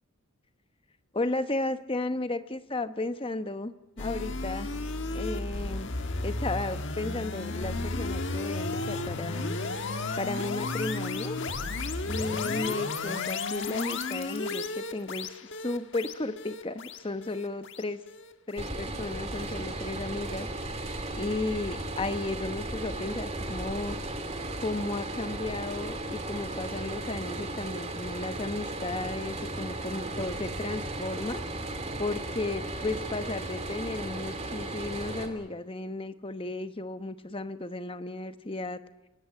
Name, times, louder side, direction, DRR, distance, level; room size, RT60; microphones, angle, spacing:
voice 1, 1.1-4.7 5.1-5.9 6.2-9.5 10.2-11.4 12.0-15.3 15.6-18.0 18.5-20.5 21.1-24.0 24.6-31.4 32.0-38.8, left 2 dB, 25° left, 10 dB, 1.0 m, -34 dB
sound 1, 4.0-19.1, left 3 dB, 55° left, 1.6 m, -33 dB
sound 2, 18.6-35.3, right 2 dB, 30° right, 2.9 m, -35 dB
28.0 x 17.5 x 8.9 m, 1.1 s
head